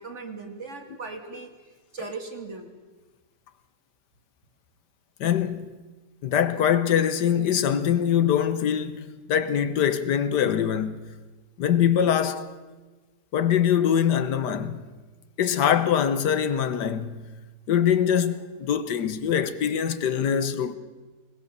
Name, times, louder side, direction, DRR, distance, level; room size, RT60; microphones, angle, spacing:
voice 1, 0.0-1.5 1.9-2.7, right 4 dB, 45° right, 2.4 m, -38 dB
voice 2, 5.2-5.7 6.2-11.1 11.6-12.5 13.3-14.8 15.4-17.2 17.7-20.8, left 9 dB, 80° left, 1.5 m, -23 dB
21.0 x 19.0 x 6.8 m
omnidirectional pair, 1.8 m